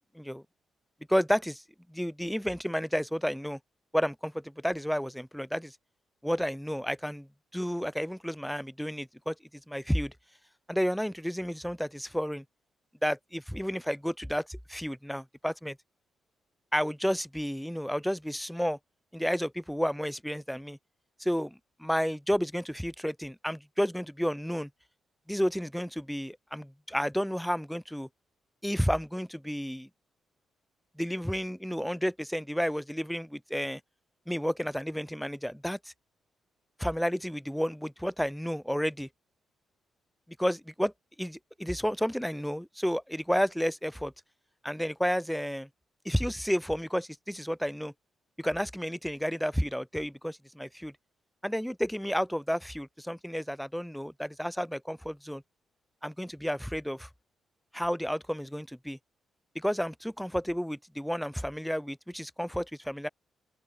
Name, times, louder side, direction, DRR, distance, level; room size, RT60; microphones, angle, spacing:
voice 1, 1.1-1.6 1.9-3.6 3.9-5.8 6.2-7.3 7.5-9.4 9.7-10.1 10.7-12.4 13.0-15.8 16.7-18.8 19.1-20.8 21.2-24.7 25.3-28.1 28.6-29.9 31.0-33.8 34.3-35.8 36.8-39.1 40.4-40.9 41.2-44.1 44.6-45.7 46.1-47.9 48.4-50.9 51.4-55.4 56.0-57.1 57.7-59.0 59.6-63.1, equal, ahead, 3.5 m, -31 dB
open air
cardioid pair, 100°, 0 cm